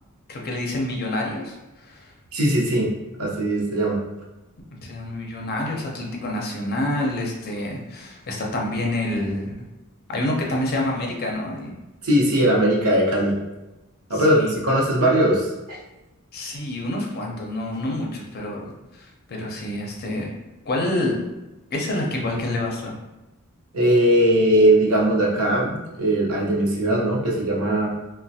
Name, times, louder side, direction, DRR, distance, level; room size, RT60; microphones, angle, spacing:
voice 1, 0.3-2.1 4.7-9.5 10.1-11.7 14.1-14.5 16.3-20.3 20.7-21.2 21.7-22.9, left 1 dB, 45° left, 0 dB, 0.5 m, -27 dB
voice 2, 2.3-2.9 3.2-4.0 12.0-13.3 14.1-15.5 23.7-27.9, right 1 dB, 75° right, -3 dB, 0.7 m, -19 dB
3.1 x 2.1 x 2.7 m, 1.0 s
head